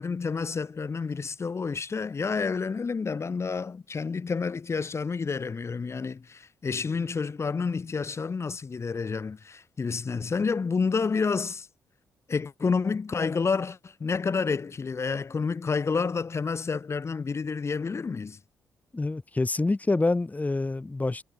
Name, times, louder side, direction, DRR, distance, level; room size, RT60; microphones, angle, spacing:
voice 1, 0.0-11.7 12.3-18.4, left 5 dB, 40° left, 3.1 m, -29 dB
voice 2, 18.9-21.2, left 2 dB, 20° left, 1.6 m, -26 dB
hypercardioid pair, 50°, 7 cm